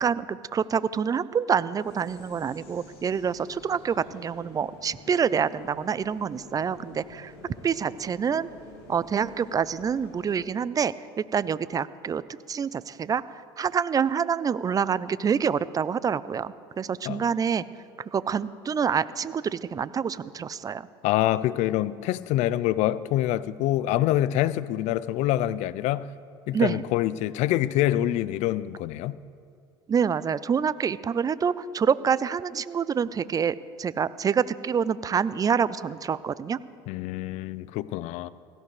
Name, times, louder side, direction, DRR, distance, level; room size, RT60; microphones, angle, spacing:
voice 1, 0.0-7.3 7.6-8.5 8.9-10.9 11.3-12.2 12.5-17.6 18.1-20.9 26.5-26.8 29.9-36.6, right 7 dB, 30° right, 0.5 m, -26 dB
sound 1, 1.8-10.5, left 3 dB, 85° left, 2.5 m, -49 dB
voice 2, 21.0-26.1 26.5-29.2 36.9-38.3, left 14 dB, 60° left, 0.5 m, -26 dB
16.5 x 15.5 x 3.3 m
hypercardioid pair, 75°, 13 cm